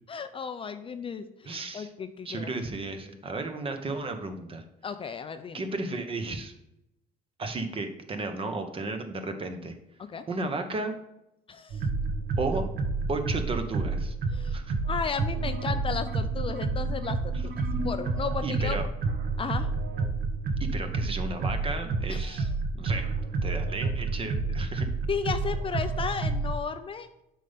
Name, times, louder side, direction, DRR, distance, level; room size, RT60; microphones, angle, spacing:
voice 1, 0.1-2.5 4.8-5.6 10.0-10.2 11.5-11.9 14.3-14.6 14.9-18.8 19.4-19.7 22.1-22.5 25.1-27.1, left 6 dB, 30° left, 9 dB, 0.5 m, -34 dB
voice 2, 1.4-1.9 2.2-4.6 5.5-6.5 7.4-9.7 10.3-10.9 12.4-12.7 13.1-14.1 14.5-14.7 18.4-18.9 20.6-22.5 22.7-24.9, right 3 dB, 35° right, 6 dB, 1.1 m, -33 dB
sound 1, 11.7-26.6, right 3 dB, 70° right, 1.1 m, -29 dB
7.5 x 5.5 x 3.6 m, 0.85 s
cardioid pair, 110°, 17 cm